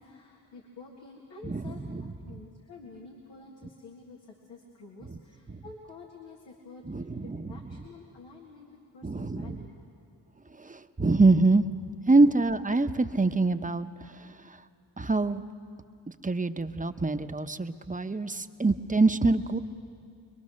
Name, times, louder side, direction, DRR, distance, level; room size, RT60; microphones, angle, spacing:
voice 1, 0.0-9.8 12.1-12.3, left 3 dB, 85° left, -2 dB, 2.1 m, -49 dB
voice 2, 1.4-2.0 5.5-5.6 6.9-7.5 9.0-9.6 10.6-11.6 12.1-13.9 15.0-15.4 16.2-19.6, right 3 dB, 20° right, 8 dB, 0.9 m, -25 dB
24.5 x 22.5 x 6.4 m, 2.3 s
cardioid pair, 50°, 42 cm